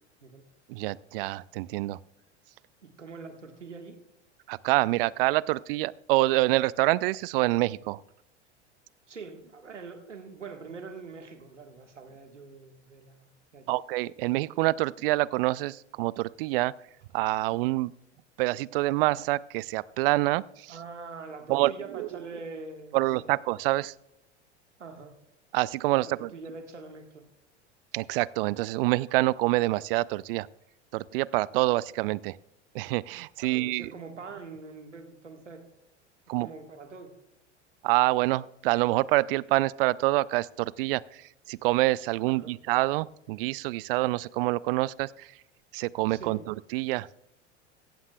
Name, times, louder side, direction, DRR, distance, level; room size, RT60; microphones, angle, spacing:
voice 1, 0.7-2.0 4.5-8.0 13.7-16.7 17.1-17.9 18.4-20.7 21.5-22.1 22.9-23.9 25.5-26.3 27.9-30.5 30.9-32.4 32.7-33.9 36.3-36.5 37.8-41.2 41.5-45.3 45.7-47.1, right 19 dB, 55° right, 22 dB, 0.5 m, -26 dB
voice 2, 2.8-4.0 9.1-13.7 20.7-23.3 24.8-25.1 25.9-27.2 33.4-35.7 36.4-37.1 42.2-42.5 46.1-46.4, right 4 dB, 85° right, 6 dB, 1.6 m, -44 dB
16.0 x 15.0 x 2.3 m, 0.86 s
figure-of-eight pair, 85°, 35 cm